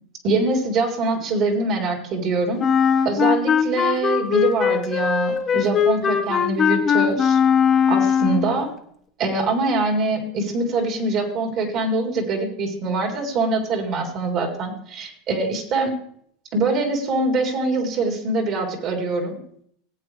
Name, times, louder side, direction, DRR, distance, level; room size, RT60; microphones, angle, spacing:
voice 1, 0.2-2.7 3.0-7.4 7.9-8.7 9.2-16.0 16.5-19.4, right 3 dB, 50° right, 2 dB, 3.7 m, -24 dB
Wind instrument woodwind instrument, 2.6-8.5, left 7 dB, 30° left, 1.3 m, -19 dB
18.0 x 8.6 x 3.3 m, 0.64 s
supercardioid pair, 110°, 0 cm